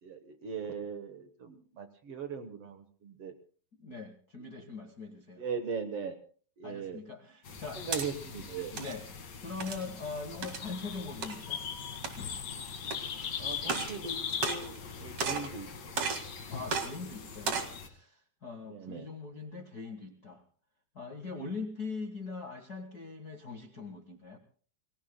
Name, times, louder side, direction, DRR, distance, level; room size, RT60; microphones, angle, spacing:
voice 1, 0.0-3.3 5.4-6.2 6.6-7.0 7.7-8.7 13.4-15.7 18.6-19.1, right 6 dB, 80° right, 8 dB, 1.3 m, -39 dB
voice 2, 3.8-5.4 6.6-7.8 8.7-9.0 9.4-11.6 16.5-20.4 20.9-24.4, left 4 dB, 85° left, 4 dB, 0.8 m, -42 dB
sound 1, 7.4-17.9, left 7 dB, 45° left, 1.5 m, -41 dB
sound 2, 7.6-8.1 8.6-8.9 9.6-9.9 10.4-10.7 11.2-11.4 11.9-12.4 12.9-13.0 13.6-14.0 14.3-14.9 15.2-15.5 16.0-16.3 16.7-16.9 17.3-17.7, right 5 dB, 45° right, 2.5 m, -33 dB
30.0 x 21.5 x 2.2 m, 0.43 s
omnidirectional pair, 4.5 m